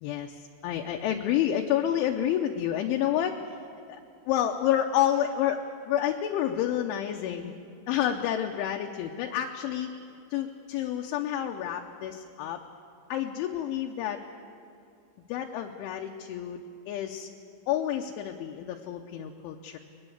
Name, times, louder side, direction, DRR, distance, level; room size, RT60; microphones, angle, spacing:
voice 1, 0.0-3.6 3.9-4.0 4.3-7.5 7.9-9.9 10.3-12.6 13.1-14.2 15.3-17.3 17.7-19.8, left 10 dB, 80° left, 3 dB, 3.1 m, -29 dB
21.5 x 21.5 x 8.0 m, 2.6 s
omnidirectional pair, 5.8 m